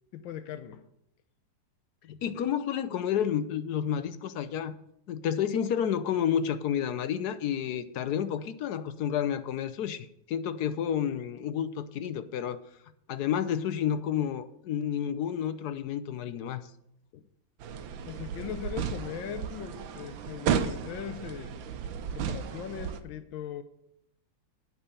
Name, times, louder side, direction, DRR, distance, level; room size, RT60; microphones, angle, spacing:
voice 1, 0.1-0.8 18.1-21.6 22.1-23.6, left 9 dB, 85° left, 1.6 m, -39 dB
voice 2, 2.0-4.8 5.1-12.6 13.1-16.6, left 9 dB, 65° left, 1.1 m, -30 dB
sound 1, 17.6-23.0, right 7 dB, 85° right, 1.6 m, -34 dB
9.8 x 5.9 x 8.5 m
omnidirectional pair, 2.0 m